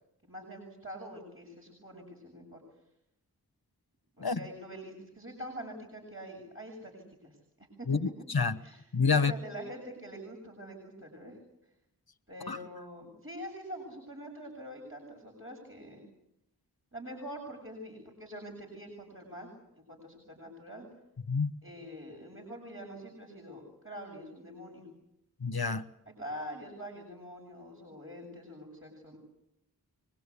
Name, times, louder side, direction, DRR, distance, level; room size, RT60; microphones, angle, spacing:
voice 1, 0.2-2.6 4.2-7.9 8.6-11.4 12.3-16.0 16.9-19.5 19.8-20.9 21.6-24.9 26.1-29.2, equal, 35° right, -1 dB, 7.2 m, -45 dB
voice 2, 7.9-8.6 8.9-9.3 12.5-12.6 21.3-21.5 25.4-25.9, left 5 dB, 70° left, 11 dB, 1.3 m, -28 dB
24.5 x 21.5 x 8.5 m, 0.82 s
wide cardioid pair, 40°, 38 cm